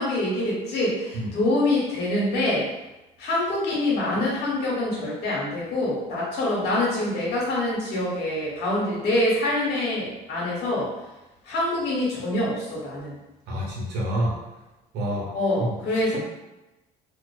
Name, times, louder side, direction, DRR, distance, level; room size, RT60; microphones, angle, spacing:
voice 1, 0.0-2.7 3.2-10.9 11.4-13.2 15.3-16.2, left 1 dB, 75° left, -5 dB, 1.1 m, -25 dB
voice 2, 13.5-14.4 14.9-15.3 15.6-15.8 16.1-16.2, right 1 dB, 80° right, -3 dB, 0.9 m, -27 dB
2.4 x 2.4 x 2.3 m, 1.0 s
cardioid pair, 110°, 17 cm